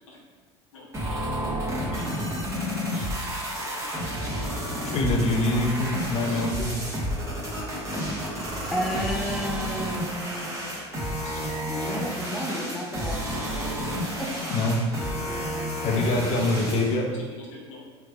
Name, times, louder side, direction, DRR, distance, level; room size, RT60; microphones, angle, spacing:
voice 1, 0.7-1.2 1.9-2.3 2.9-4.3 6.3-6.6 9.7-9.8 10.3-10.8 11.2-11.6 12.4-12.5 13.3-14.1 17.7-17.8, left 3 dB, 90° left, -3 dB, 0.9 m, -46 dB
sound 1, 0.9-16.9, equal, 20° right, 1.0 m, -31 dB
voice 2, 4.8-6.7 14.5-14.8 15.8-17.1, left 2 dB, 45° left, 1 dB, 0.6 m, -24 dB
voice 3, 8.7-10.7 11.6-13.7 14.2-14.4 15.1-15.7, equal, ahead, -1 dB, 0.4 m, -33 dB
3.3 x 3.1 x 2.4 m, 1.5 s
hypercardioid pair, 95°, 15 cm